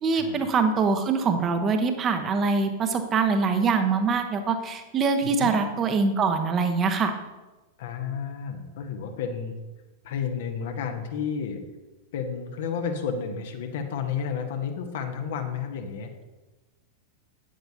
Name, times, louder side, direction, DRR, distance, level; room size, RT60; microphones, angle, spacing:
voice 1, 0.0-7.1, right 4 dB, 25° right, 7 dB, 1.0 m, -24 dB
voice 2, 7.8-9.5 10.0-11.6 12.1-16.1, left 6 dB, 55° left, 5 dB, 1.1 m, -31 dB
10.0 x 9.1 x 2.8 m, 1.1 s
figure-of-eight pair, 90°, 0 cm